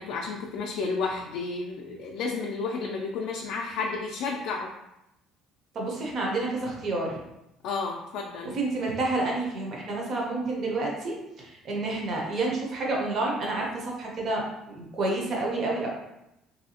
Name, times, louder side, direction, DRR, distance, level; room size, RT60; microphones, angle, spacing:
voice 1, 0.0-4.7 7.6-8.6, left 4 dB, 60° left, 0 dB, 0.3 m, -31 dB
voice 2, 5.7-7.2 8.5-15.9, right 2 dB, 35° right, -2 dB, 0.7 m, -29 dB
3.1 x 2.6 x 2.8 m, 0.88 s
cardioid pair, 165°, 0 cm